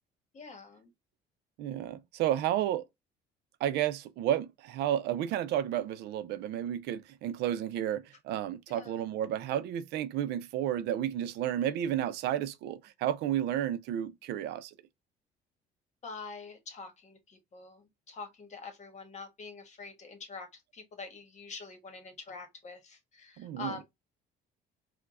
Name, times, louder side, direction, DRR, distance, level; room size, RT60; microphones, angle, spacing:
voice 1, 0.3-0.9 8.7-9.1 16.0-23.8, left 4 dB, 45° left, 1.2 m, -45 dB
voice 2, 1.6-2.9 3.6-14.7 23.4-23.8, right 11 dB, 80° right, 0.5 m, -32 dB
4.6 x 2.2 x 2.4 m
cardioid pair, 110°, 17 cm